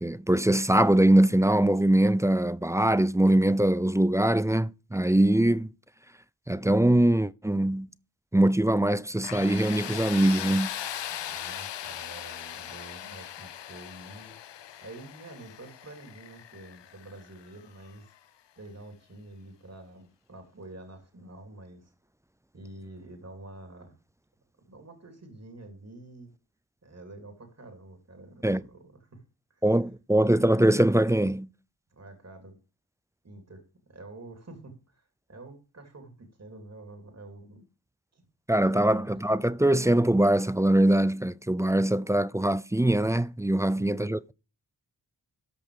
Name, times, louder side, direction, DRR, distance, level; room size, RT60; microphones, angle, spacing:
voice 1, 0.0-5.7 6.5-7.9 8.3-10.7 28.4-28.6 29.6-31.5 38.5-44.3, right 1 dB, 5° right, 0.4 m, -22 dB
Tools, 9.2-18.0, left 11 dB, 85° left, 0.7 m, -39 dB
voice 2, 11.1-18.1 18.6-21.9 22.5-24.0 24.6-26.3 26.8-29.2 29.5-29.6 31.9-32.6 33.2-33.6 33.9-37.7 38.1-38.2 38.7-39.1 43.6-44.1, right 2 dB, 35° right, 3.1 m, -47 dB
13.5 x 5.3 x 5.0 m
cardioid pair, 55°, 42 cm